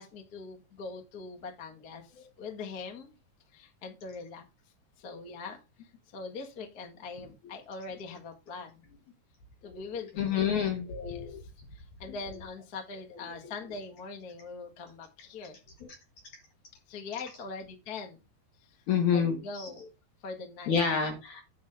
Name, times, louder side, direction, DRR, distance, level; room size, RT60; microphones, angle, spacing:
voice 1, 0.0-3.1 3.5-4.4 5.0-5.6 6.1-8.8 9.6-10.4 11.1-11.4 11.7-15.6 16.9-18.2 19.1-19.9 20.2-20.8, left 4 dB, 40° left, 3 dB, 1.3 m, -42 dB
voice 2, 10.2-11.4 18.9-19.7 20.7-21.4, left 7 dB, 65° left, 5 dB, 2.1 m, -28 dB
9.4 x 3.7 x 6.6 m, 0.26 s
omnidirectional pair, 4.5 m